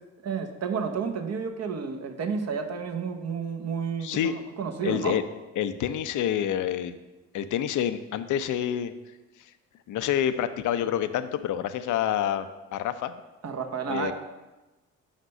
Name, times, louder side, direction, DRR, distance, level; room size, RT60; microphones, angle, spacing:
voice 1, 0.2-5.2 13.4-14.1, right 6 dB, 45° right, 5 dB, 1.0 m, -31 dB
voice 2, 4.0-4.4 4.8-5.2 5.6-6.9 7.3-8.9 9.9-12.5 12.7-13.1 13.9-14.1, left 10 dB, 60° left, 11 dB, 0.6 m, -27 dB
5.3 x 5.1 x 6.5 m, 1.1 s
hypercardioid pair, 60°, 35 cm